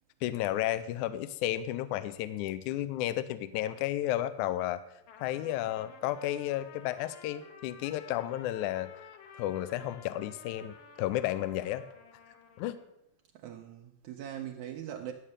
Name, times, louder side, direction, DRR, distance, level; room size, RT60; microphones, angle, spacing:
voice 1, 0.2-4.8 5.2-8.9 9.4-11.8 12.6-12.8, left 13 dB, 85° left, 13 dB, 1.8 m, -32 dB
Trumpet, 5.0-12.9, left 6 dB, 70° left, 2.2 m, -53 dB
voice 2, 13.3-15.1, right 10 dB, 85° right, 4 dB, 1.7 m, -41 dB
11.5 x 7.4 x 6.6 m, 0.83 s
omnidirectional pair, 4.1 m